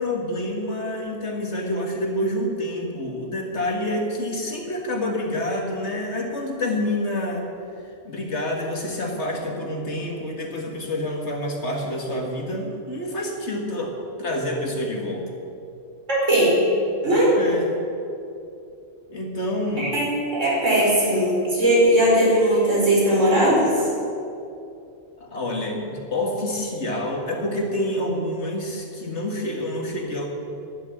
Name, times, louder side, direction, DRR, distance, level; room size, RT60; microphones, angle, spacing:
voice 1, 0.0-7.5 8.0-15.3 17.4-17.8 19.1-19.9 25.2-30.3, left 1 dB, 55° left, 1 dB, 2.2 m, -27 dB
voice 2, 16.1-16.6 17.0-17.3 19.8-23.9, right 1 dB, 65° right, -5 dB, 5.2 m, -19 dB
11.0 x 11.0 x 9.6 m, 2.6 s
omnidirectional pair, 1.3 m